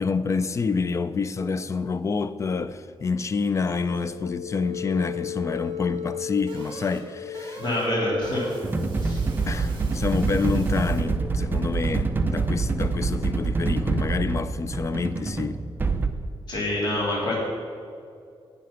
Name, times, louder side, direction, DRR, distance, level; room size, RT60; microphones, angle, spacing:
voice 1, 0.0-7.6 9.5-15.6, left 4 dB, 30° left, 0.4 m, -27 dB
sound 1, 4.0-11.1, left 6 dB, 55° right, 2.8 m, -37 dB
voice 2, 7.6-8.5 9.0-9.2 16.5-17.4, left 1 dB, 50° left, 3.3 m, -26 dB
sound 2, 8.6-16.1, right 4 dB, 20° right, 0.6 m, -26 dB
11.0 x 8.5 x 5.8 m
wide cardioid pair, 165°, 10 cm